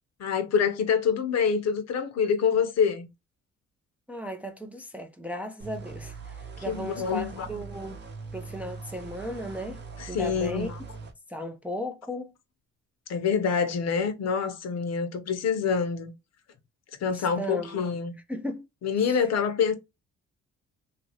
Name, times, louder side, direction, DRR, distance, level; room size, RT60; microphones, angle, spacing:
voice 1, 0.2-3.1 6.7-7.5 10.0-10.8 13.1-16.1 17.0-18.1 18.8-19.8, left 6 dB, 60° left, 0.7 m, -26 dB
voice 2, 4.1-6.4 6.6-8.0 8.3-9.8 10.1-10.7 11.3-12.3 17.0-17.8 18.3-18.7 19.0-19.2, equal, 5° right, 0.4 m, -36 dB
sound 1, 5.6-11.1, right 4 dB, 35° right, 0.8 m, -41 dB
2.7 x 2.5 x 2.8 m
cardioid pair, 90°, 30 cm